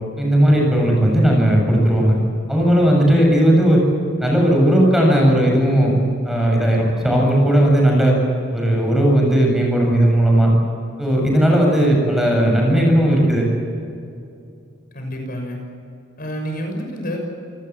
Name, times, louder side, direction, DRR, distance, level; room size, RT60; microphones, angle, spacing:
voice 1, 0.2-2.2 2.5-3.8 4.2-5.9 6.2-8.2 8.5-10.5 11.0-13.4, right 1 dB, ahead, -1 dB, 7.6 m, -16 dB
voice 2, 14.9-15.6 16.2-17.2, equal, 50° left, 2 dB, 6.4 m, -28 dB
28.5 x 19.5 x 7.6 m, 2.5 s
head